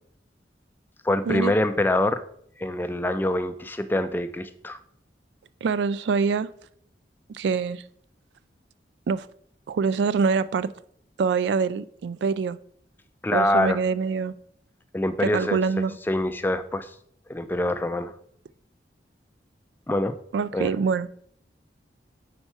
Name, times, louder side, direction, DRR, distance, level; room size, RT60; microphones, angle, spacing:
voice 1, 1.0-2.2 2.6-4.8 13.2-13.8 14.9-15.6 16.1-16.9 17.3-18.1 19.9-20.2 20.5-20.7, left 1 dB, 10° left, 0.3 m, -25 dB
voice 2, 5.6-6.5 7.3-7.8 9.1-9.3 9.7-10.7 11.2-12.6 13.3-14.4 15.2-15.9 20.3-21.1, right 5 dB, 75° right, 0.3 m, -24 dB
4.4 x 4.3 x 5.7 m
head